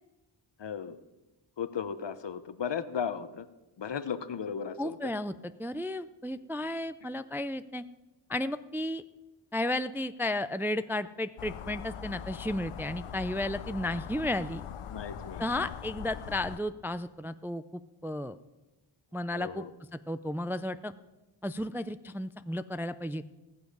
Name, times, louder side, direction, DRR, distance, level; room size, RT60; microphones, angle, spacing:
voice 1, 0.6-1.0 1.6-3.5 3.8-5.1 14.9-15.7 19.3-19.7, left 7 dB, 60° left, 12 dB, 0.9 m, -36 dB
voice 2, 4.8-5.3 5.6-7.8 8.3-9.0 9.5-14.7 15.4-18.4 19.1-19.6 20.1-20.9 21.4-23.2, left 1 dB, 5° right, 12 dB, 0.4 m, -33 dB
sound 1, 11.4-16.6, left 8 dB, 85° left, 0.8 m, -41 dB
19.5 x 7.1 x 5.4 m, 1.1 s
cardioid pair, 55°, 50 cm